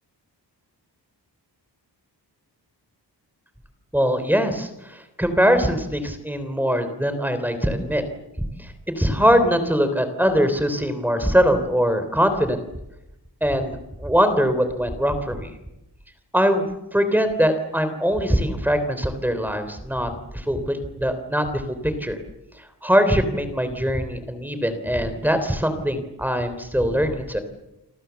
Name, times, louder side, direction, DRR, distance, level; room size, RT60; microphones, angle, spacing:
voice 1, 3.9-8.0 8.6-12.6 13.4-15.5 16.3-22.2 22.8-27.4, equal, 5° right, 9 dB, 3.4 m, -22 dB
29.0 x 25.5 x 7.1 m, 0.94 s
wide cardioid pair, 170°, 42 cm